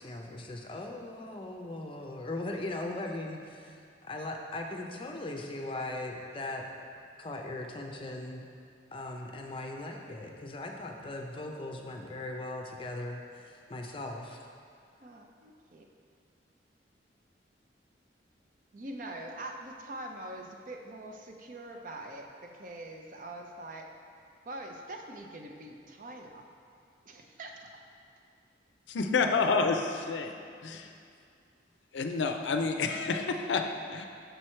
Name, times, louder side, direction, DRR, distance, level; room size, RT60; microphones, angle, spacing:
voice 1, 0.0-6.7 7.2-8.4 8.9-14.5, left 2 dB, 30° left, 2 dB, 0.5 m, -39 dB
voice 2, 15.0-15.9 18.7-23.9 24.5-26.5 27.1-27.7, right 1 dB, 45° right, 2 dB, 0.5 m, -43 dB
voice 3, 29.0-29.8 30.1-30.3 30.6-30.9 31.9-34.1, left 4 dB, 85° left, 5 dB, 0.5 m, -29 dB
6.7 x 4.7 x 4.4 m, 2.3 s
head